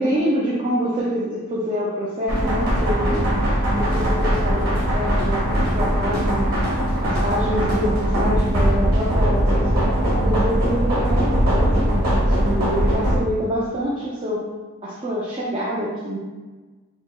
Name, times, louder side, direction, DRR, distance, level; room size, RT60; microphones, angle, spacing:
voice 1, 0.0-3.3 3.7-14.4 14.8-16.2, equal, 25° right, -7 dB, 0.4 m, -26 dB
sound 1, 2.3-13.2, equal, 70° right, 1.2 m, -20 dB
6.0 x 2.0 x 2.2 m, 1.3 s
head